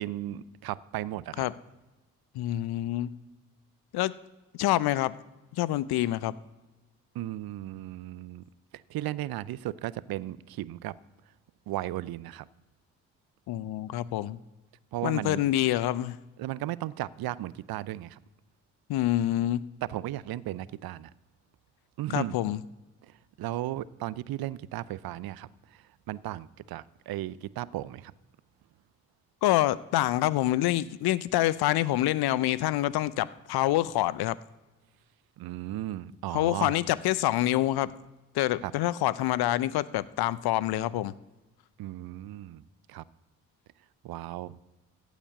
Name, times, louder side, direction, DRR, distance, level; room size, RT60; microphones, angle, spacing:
voice 1, 0.0-1.4 7.1-8.4 8.7-10.9 11.7-12.5 14.9-15.4 16.4-18.2 19.8-21.1 22.0-22.4 23.0-23.1 23.4-25.5 26.1-28.1 35.4-36.8 38.6-38.7 41.8-42.6 42.9-43.0 44.0-44.6, right 14 dB, 60° right, 20 dB, 0.6 m, -35 dB
voice 2, 2.3-3.1 3.9-4.1 4.6-5.1 5.6-6.3 13.5-14.4 15.0-16.2 18.9-19.6 22.1-22.6 29.4-34.4 36.3-37.9 38.3-41.1, left 14 dB, 65° left, 19 dB, 0.6 m, -26 dB
15.0 x 5.0 x 8.3 m, 1.1 s
hypercardioid pair, 40°, 41 cm